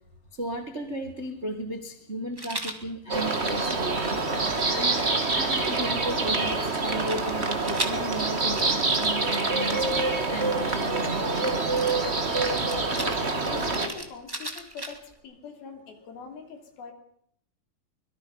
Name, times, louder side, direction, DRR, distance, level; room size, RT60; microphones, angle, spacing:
voice 1, 0.3-4.2 4.7-5.1 5.3-11.8, right 1 dB, 50° right, 4 dB, 0.7 m, -35 dB
Rattle, 2.4-2.8 3.5-6.1 7.0-11.1 11.7-15.2, right 1 dB, 10° right, 1.0 m, -39 dB
sound 1, 3.1-13.9, right 3 dB, 35° right, 1.0 m, -26 dB
voice 2, 13.0-16.9, left 5 dB, 75° left, 4 dB, 4.9 m, -43 dB
24.0 x 22.5 x 5.5 m, 0.71 s
omnidirectional pair, 4.4 m